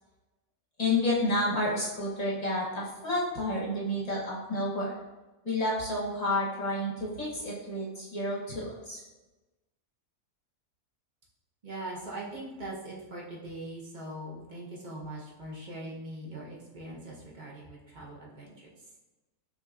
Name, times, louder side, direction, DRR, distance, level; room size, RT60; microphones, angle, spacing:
voice 1, 0.8-4.9 5.4-9.0, left 1 dB, 30° left, -5 dB, 0.8 m, -30 dB
voice 2, 11.6-18.7, right 1 dB, 40° right, -4 dB, 0.8 m, -41 dB
6.0 x 2.6 x 2.4 m, 1.1 s
omnidirectional pair, 1.6 m